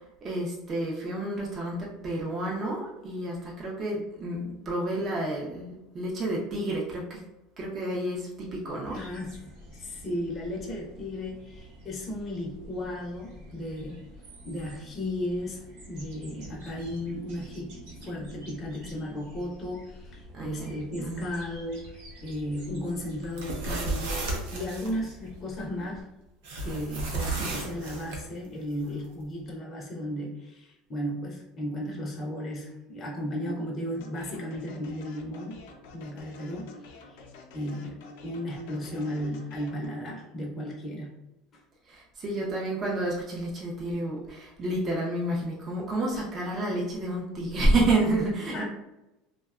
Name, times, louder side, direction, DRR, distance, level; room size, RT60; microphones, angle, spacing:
voice 1, 0.2-7.2 7.6-9.0 20.3-21.2 41.9-48.6, right 1 dB, 30° right, -3 dB, 0.5 m, -30 dB
voice 2, 8.8-9.4 9.7-14.0 14.4-17.8 18.0-26.1 26.6-35.6 35.9-37.2 37.5-41.1 41.5-41.6 48.5-48.6, left 1 dB, 25° left, -3 dB, 0.5 m, -35 dB
sound 1, 8.9-26.0, equal, 65° right, 0.9 m, -48 dB
sound 2, 23.2-24.9 26.4-28.2, right 3 dB, 85° right, 0.6 m, -33 dB
sound 3, 33.9-39.9, left 3 dB, 80° left, 0.5 m, -49 dB
2.7 x 2.1 x 2.3 m, 0.95 s
supercardioid pair, 135°, 0 cm